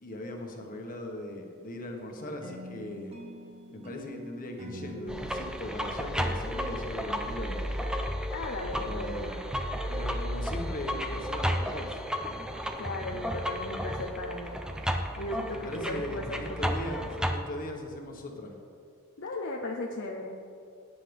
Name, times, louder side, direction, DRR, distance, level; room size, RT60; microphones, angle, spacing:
voice 1, 0.0-3.2 3.7-7.6 8.7-9.4 9.9-12.0 15.5-18.6, left 1 dB, 40° left, 1 dB, 1.6 m, -39 dB
sound 1, 2.4-7.3, equal, 30° right, 1.3 m, -45 dB
sound 2, 5.1-17.4, equal, 5° right, 0.7 m, -33 dB
voice 2, 8.3-9.4 12.8-14.6 15.2-16.8 19.2-20.4, left 2 dB, 55° left, 0 dB, 0.8 m, -37 dB
18.0 x 9.7 x 3.6 m, 2.4 s
head